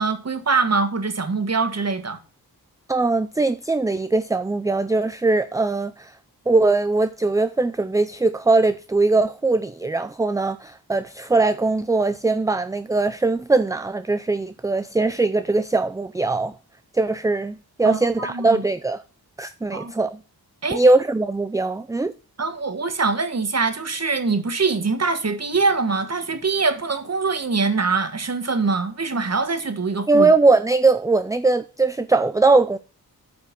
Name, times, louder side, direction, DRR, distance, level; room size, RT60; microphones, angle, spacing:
voice 1, 0.0-2.2 17.8-18.7 19.7-19.9 20.6-20.8 22.4-30.3, right 4 dB, 45° right, 1.5 m, -23 dB
voice 2, 2.9-6.1 6.5-16.5 16.9-19.0 19.4-20.2 20.7-22.1 30.1-32.8, right 3 dB, 10° right, 0.4 m, -20 dB
9.3 x 5.2 x 5.2 m
wide cardioid pair, 85°, 37 cm